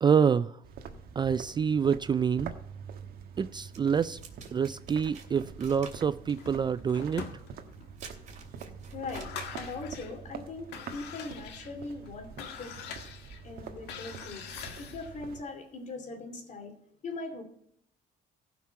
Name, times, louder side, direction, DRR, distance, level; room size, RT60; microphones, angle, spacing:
voice 1, 0.0-0.5 1.2-2.5 3.4-4.2 4.5-7.2, right 7 dB, 25° right, 14 dB, 0.4 m, -26 dB
sound 1, 0.6-15.4, right 6 dB, 60° right, 1.4 m, -46 dB
sound 2, 3.7-9.8, right 5 dB, 45° right, 3.0 m, -50 dB
sound 3, 6.3-7.9 8.4-8.5 8.9-10.2 10.6-15.2, left 6 dB, 80° left, 1.8 m, -43 dB
voice 2, 8.9-12.7 13.4-14.5 14.8-16.7 17.0-17.4, left 3 dB, 45° left, 6 dB, 2.8 m, -40 dB
15.5 x 6.0 x 5.7 m, 0.70 s
cardioid pair, 110°, 17 cm